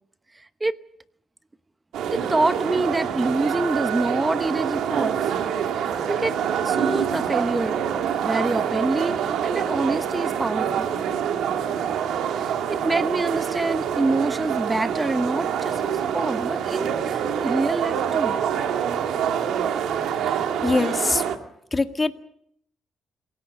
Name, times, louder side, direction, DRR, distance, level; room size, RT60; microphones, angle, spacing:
sound 1, 1.9-21.4, right 8 dB, 80° right, 2.1 m, -26 dB
voice 1, 2.1-5.2 6.1-6.4 6.6-7.8 8.2-10.9 12.3-18.4, right 2 dB, 15° right, 13 dB, 0.9 m, -26 dB
voice 2, 20.6-21.2 21.7-22.1, left 3 dB, 25° left, 7 dB, 1.9 m, -22 dB
28.0 x 17.5 x 6.7 m, 0.70 s
cardioid pair, 90°, 0 cm